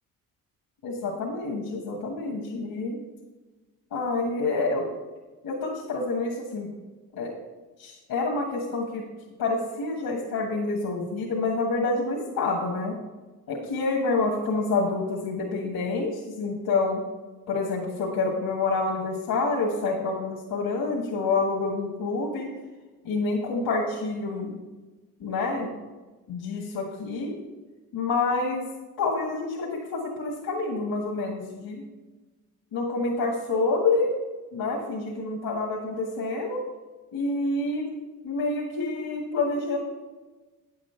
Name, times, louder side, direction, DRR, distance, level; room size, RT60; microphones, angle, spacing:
voice 1, 0.8-3.0 3.9-4.9 5.4-6.7 7.1-7.3 7.8-9.0 9.4-12.9 13.5-17.0 17.5-22.5 23.0-24.5 25.2-25.7 26.3-27.3 27.9-28.6 29.0-31.8 32.7-34.1 34.5-36.6 37.1-37.9 38.2-39.8, left 3 dB, 75° left, 0 dB, 1.5 m, -27 dB
8.9 x 7.5 x 4.4 m, 1.2 s
supercardioid pair, 50°, 36 cm